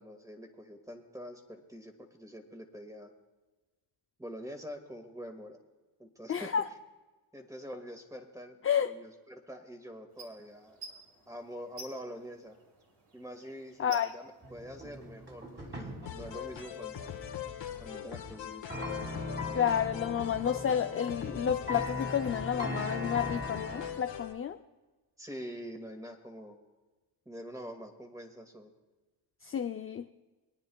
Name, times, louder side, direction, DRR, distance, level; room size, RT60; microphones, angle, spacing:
voice 1, 0.0-3.1 4.2-5.6 6.0-6.5 7.3-10.8 11.3-12.6 13.1-17.2 17.8-18.7 25.2-26.6 27.3-28.7, equal, 5° right, 5 dB, 2.0 m, -45 dB
voice 2, 6.3-6.6 8.6-8.9 13.8-14.1 19.5-24.6 29.4-30.1, left 8 dB, 30° left, 7 dB, 0.5 m, -30 dB
sound 1, 10.1-17.4, right 3 dB, 75° right, 3.2 m, -54 dB
sound 2, 14.4-23.9, left 2 dB, 25° right, 3.1 m, -40 dB
sound 3, 16.1-24.3, left 9 dB, 65° left, 1.6 m, -41 dB
24.0 x 9.5 x 2.3 m, 1.2 s
supercardioid pair, 70°, 47 cm